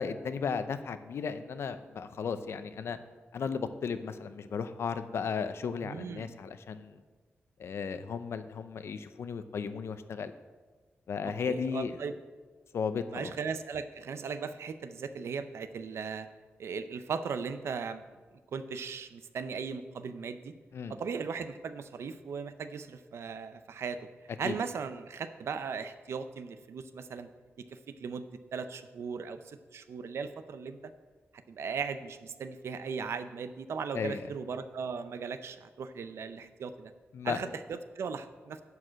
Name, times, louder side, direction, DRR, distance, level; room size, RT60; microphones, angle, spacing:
voice 1, 0.0-3.0 3.3-7.0 7.6-10.3 11.1-12.0 12.7-13.3 20.7-20.9 24.4-24.6 33.9-34.2 37.1-37.4, left 6 dB, 75° left, 11 dB, 0.6 m, -35 dB
voice 2, 5.8-6.3 11.2-12.1 13.1-16.3 16.6-18.0 18.5-20.5 20.9-24.1 24.4-27.3 27.6-30.8 31.5-36.9 37.2-38.6, right 5 dB, 85° right, 10 dB, 0.6 m, -38 dB
11.0 x 4.8 x 7.5 m, 1.4 s
wide cardioid pair, 150°, 4 cm